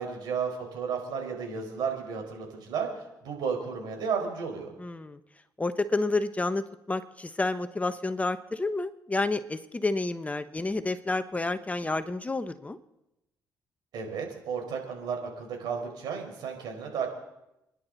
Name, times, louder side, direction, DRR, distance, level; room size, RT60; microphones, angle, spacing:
voice 1, 0.0-2.9 3.2-4.7 13.9-17.1, right 6 dB, 75° right, 2 dB, 4.6 m, -33 dB
voice 2, 4.8-5.2 5.6-12.8, left 2 dB, 20° left, 10 dB, 1.0 m, -30 dB
29.0 x 11.0 x 4.0 m, 0.89 s
cardioid pair, 75°, 7 cm